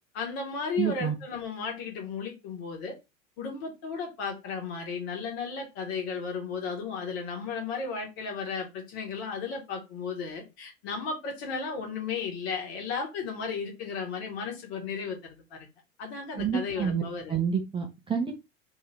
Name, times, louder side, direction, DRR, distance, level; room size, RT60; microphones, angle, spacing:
voice 1, 0.1-2.9 3.4-15.7 16.0-17.3, left 5 dB, 50° left, 1.6 m, -34 dB
voice 2, 0.8-1.2 16.4-17.0 17.3-18.3, right 7 dB, 15° right, 0.6 m, -28 dB
3.1 x 2.7 x 3.4 m
figure-of-eight pair, 80°, 39 cm